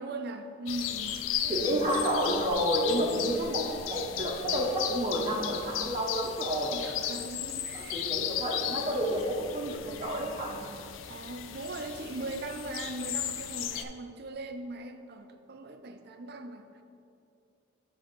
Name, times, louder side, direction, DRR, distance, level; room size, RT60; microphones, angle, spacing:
voice 1, 0.0-2.0 6.7-8.1 11.1-16.7, right 2 dB, 55° right, 7 dB, 0.5 m, -40 dB
sound 1, 0.7-13.8, left 10 dB, 85° left, 0.4 m, -35 dB
voice 2, 1.5-6.7 7.7-10.7, equal, 25° right, -3 dB, 0.8 m, -30 dB
8.2 x 3.4 x 6.1 m, 2.5 s
head